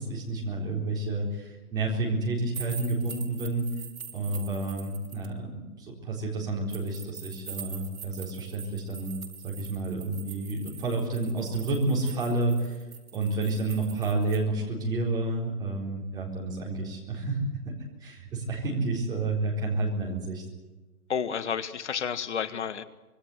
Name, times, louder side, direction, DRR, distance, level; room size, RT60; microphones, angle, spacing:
voice 1, 0.0-3.7 4.1-9.1 9.4-12.8 13.1-17.7 18.0-20.4, right 2 dB, 10° right, -3 dB, 4.1 m, -30 dB
sound 1, 2.5-5.3 6.7-14.4, right 6 dB, 60° right, 5.5 m, -44 dB
voice 2, 21.1-22.8, left 7 dB, 50° left, 12 dB, 1.8 m, -31 dB
26.0 x 23.0 x 8.1 m, 1.1 s
hypercardioid pair, 170°, 46 cm